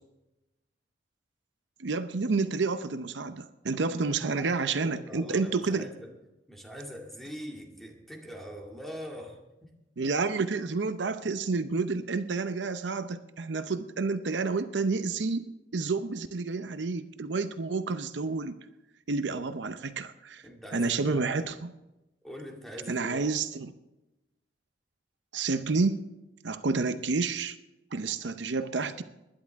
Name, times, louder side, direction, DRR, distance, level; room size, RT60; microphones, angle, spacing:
voice 1, 1.8-5.9 10.0-15.4 15.7-18.6 19.1-20.4 20.7-21.7 22.9-23.7 25.3-26.0 26.4-27.6 27.9-29.0, right 4 dB, 80° right, 11 dB, 0.7 m, -29 dB
voice 2, 4.3-6.1 6.5-9.7 19.3-19.4 20.4-21.3 22.2-23.3 28.8-29.0, equal, ahead, 0 dB, 2.2 m, -43 dB
20.5 x 11.0 x 3.6 m, 0.98 s
head